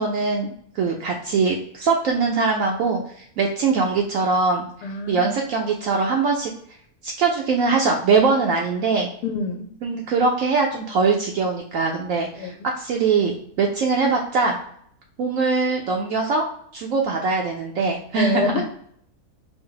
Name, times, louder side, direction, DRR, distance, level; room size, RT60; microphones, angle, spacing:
voice 1, 0.0-4.7 5.1-6.5 7.0-9.1 9.8-14.6 15.2-16.5 16.7-18.6, right 4 dB, 70° right, 0 dB, 0.9 m, -22 dB
voice 2, 4.8-5.3 9.2-9.7 12.4-12.5 18.2-18.6, left 4 dB, 90° left, 3 dB, 1.1 m, -26 dB
4.0 x 2.0 x 3.8 m, 0.64 s
omnidirectional pair, 1.6 m